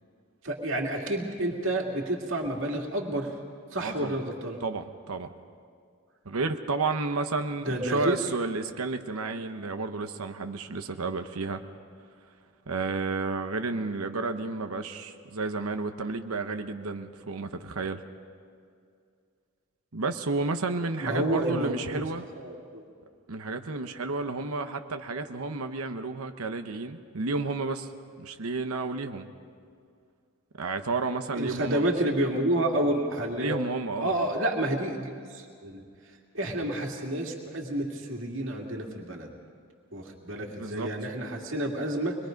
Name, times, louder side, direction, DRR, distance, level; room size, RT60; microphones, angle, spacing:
voice 1, 0.4-3.3 3.7-4.6 7.6-8.2 21.0-22.0 22.4-22.8 31.4-33.6 34.0-35.8 36.3-39.3 39.9-42.2, right 1 dB, 60° right, 1 dB, 2.4 m, -29 dB
voice 2, 3.8-4.2 4.6-5.3 6.2-11.6 12.7-18.0 19.9-22.3 23.3-27.9 28.2-29.3 30.6-31.9 33.3-34.1 40.6-40.9, right 3 dB, 85° right, 7 dB, 1.0 m, -31 dB
25.0 x 21.5 x 5.2 m, 2.2 s
head